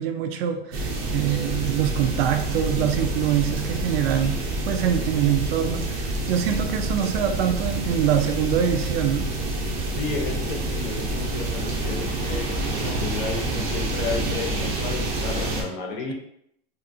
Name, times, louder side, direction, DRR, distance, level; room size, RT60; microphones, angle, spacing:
voice 1, 0.0-9.3, right 9 dB, 85° right, 6 dB, 0.5 m, -24 dB
sound 1, 0.7-15.6, right 2 dB, 35° right, 0.5 m, -28 dB
voice 2, 9.9-16.1, left 4 dB, 60° left, 1 dB, 0.8 m, -33 dB
2.8 x 2.6 x 2.5 m, 0.75 s
supercardioid pair, 170°, 29 cm